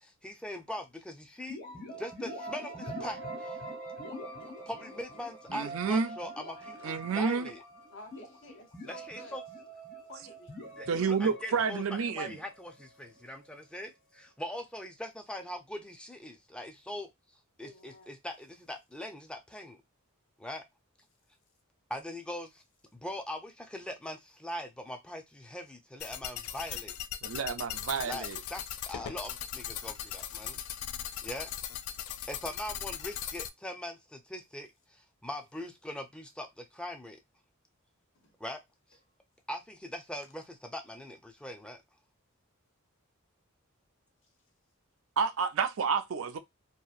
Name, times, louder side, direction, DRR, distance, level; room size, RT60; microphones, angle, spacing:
voice 1, 0.0-1.6 2.0-3.6 4.7-7.6 8.9-9.4 10.8-17.1 17.6-19.8 20.4-20.6 21.9-22.6 22.9-27.0 28.0-30.6 31.2-31.5 32.3-37.2 38.4-38.6 39.5-41.8, left 1 dB, 5° left, 0.4 m, -41 dB
sound 1, 1.5-13.2, right 1 dB, 45° left, 1.3 m, -44 dB
voice 2, 5.5-6.2 6.8-7.5 10.9-12.4 27.2-28.4 45.2-46.4, right 5 dB, 65° right, 0.4 m, -30 dB
voice 3, 7.9-9.4 10.1-10.5 17.6-18.1 38.2-38.3, left 1 dB, 60° left, 0.8 m, -51 dB
sound 2, 26.0-33.5, left 10 dB, 85° left, 0.3 m, -39 dB
2.8 x 2.5 x 2.4 m
head